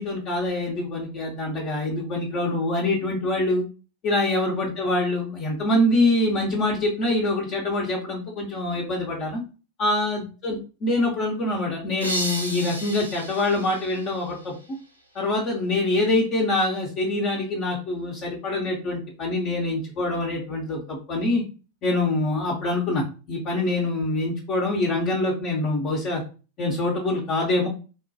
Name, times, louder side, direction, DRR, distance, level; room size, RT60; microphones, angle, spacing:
voice 1, 0.0-3.6 4.0-9.4 9.8-14.5 15.1-21.4 21.8-26.2 26.6-27.7, left 2 dB, 35° left, -2 dB, 0.7 m, -25 dB
sound 1, 12.0-14.8, right 1 dB, 85° right, 0.6 m, -33 dB
3.5 x 2.2 x 2.6 m, 0.34 s
figure-of-eight pair, 90°, 0 cm